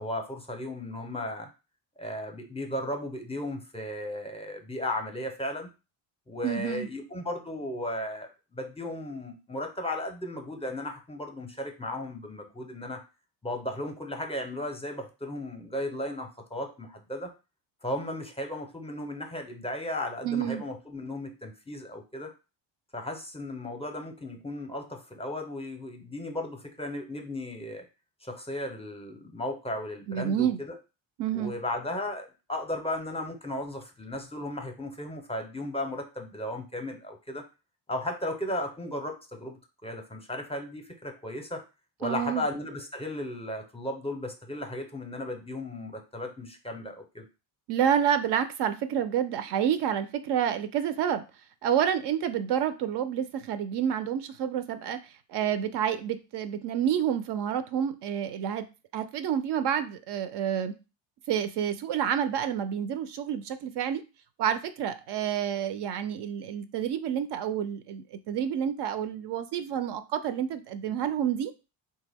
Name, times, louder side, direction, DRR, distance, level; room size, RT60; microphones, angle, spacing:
voice 1, 0.0-1.5 2.0-5.7 6.3-13.0 13.4-17.3 17.8-22.3 22.9-27.9 28.2-30.8 31.3-37.4 37.9-39.5 39.8-41.6 42.0-47.3, left 1 dB, 10° left, 4 dB, 0.6 m, -35 dB
voice 2, 6.4-6.9 20.2-20.6 30.1-30.6 31.2-31.5 42.0-42.4 47.7-51.2 51.6-58.6 58.9-60.7 61.3-64.0 64.4-71.5, right 9 dB, 55° right, 10 dB, 0.5 m, -29 dB
3.4 x 2.2 x 3.4 m, 0.30 s
supercardioid pair, 80°, 49 cm